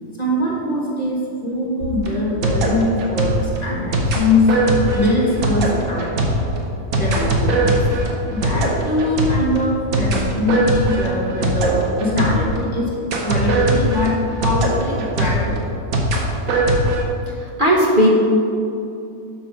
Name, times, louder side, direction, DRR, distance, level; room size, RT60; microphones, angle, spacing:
voice 1, 0.2-4.5 4.9-6.2 7.0-7.8 8.3-12.9 13.2-15.6, left 1 dB, 30° left, -4 dB, 1.3 m, -22 dB
sound 1, 1.8-12.7 13.1-17.0, right 1 dB, 75° right, 1.4 m, -21 dB
voice 2, 17.4-18.1, equal, 40° right, -5 dB, 1.0 m, -16 dB
7.4 x 5.9 x 4.9 m, 2.7 s
omnidirectional pair, 1.5 m